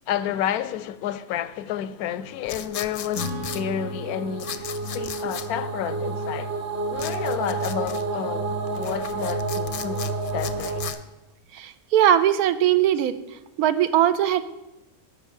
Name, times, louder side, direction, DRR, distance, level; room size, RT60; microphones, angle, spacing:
voice 1, 0.1-6.5 6.9-10.8, left 10 dB, 90° left, 1.1 m, -30 dB
sound 1, 2.4-10.9, right 3 dB, 40° right, 1.3 m, -30 dB
sound 2, 2.5-3.6 4.4-5.5 7.0-8.0 8.7-11.0, left 8 dB, 60° left, 0.6 m, -36 dB
Acoustic guitar / Strum, 3.1-6.7, left 2 dB, 60° right, 1.4 m, -39 dB
voice 2, 11.5-13.2 13.6-14.4, right 11 dB, 90° right, 1.2 m, -20 dB
12.0 x 5.8 x 7.1 m
omnidirectional pair, 1.5 m